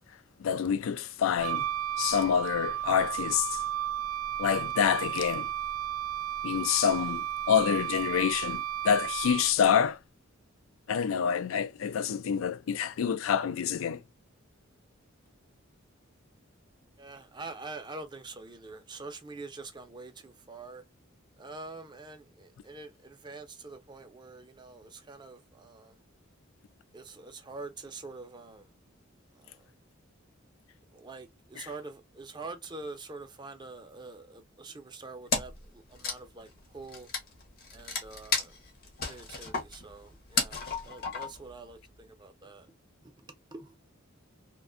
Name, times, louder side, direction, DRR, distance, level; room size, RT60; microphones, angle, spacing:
voice 1, 0.4-1.6 2.0-3.6 4.4-5.5 6.4-10.0 10.9-14.0 31.6-31.7, left 8 dB, 70° left, 0.3 m, -27 dB
Wind instrument woodwind instrument, 1.4-9.7, right 11 dB, 90° right, 0.3 m, -33 dB
voice 2, 17.0-20.8 21.4-26.0 26.9-28.7 29.4-29.7 30.9-37.1 37.7-38.5 39.0-42.7 43.0-43.8, right 3 dB, 20° right, 0.5 m, -45 dB
Wood, 35.3-35.7 35.9-41.5, left 4 dB, 50° left, 0.8 m, -33 dB
2.5 x 2.2 x 2.4 m
head